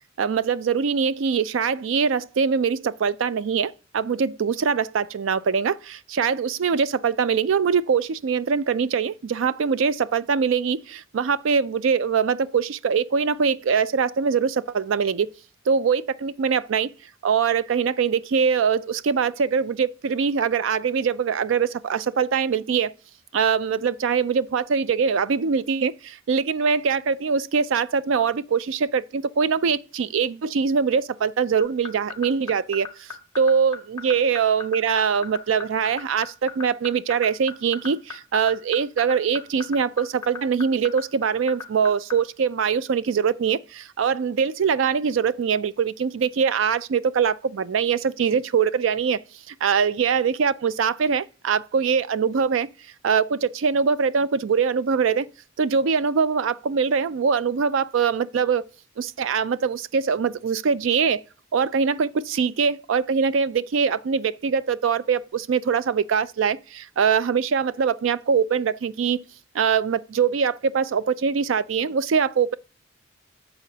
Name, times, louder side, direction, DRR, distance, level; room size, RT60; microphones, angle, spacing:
voice 1, 0.2-15.3 15.7-16.9 17.2-22.9 23.3-49.2 49.5-52.7 53.0-55.3 55.6-58.7 59.0-61.2 61.5-69.2 69.5-72.5, right 6 dB, 65° right, 0.4 m, -23 dB
sound 1, 31.6-42.1, left 6 dB, 15° left, 1.5 m, -34 dB
9.0 x 6.9 x 2.8 m
head